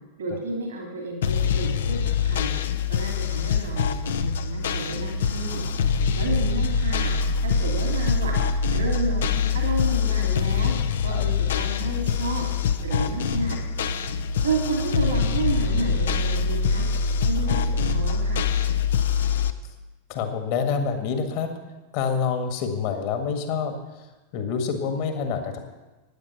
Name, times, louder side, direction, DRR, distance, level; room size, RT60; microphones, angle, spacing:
voice 1, 0.2-2.0 2.2-2.5 2.9-3.9 4.2-5.6 6.2-7.1 7.4-8.3 8.7-10.7 11.0-12.5 12.8-13.6 14.4-16.8 17.2-18.4, right 3 dB, 65° right, 0 dB, 2.7 m, -30 dB
sound 1, 1.2-19.5, left 6 dB, 60° left, 0.6 m, -24 dB
voice 2, 20.1-21.5 21.9-24.1 24.3-25.6, left 6 dB, 45° left, 6 dB, 1.7 m, -27 dB
12.5 x 9.8 x 5.9 m, 1.1 s
figure-of-eight pair, 90°, 0 cm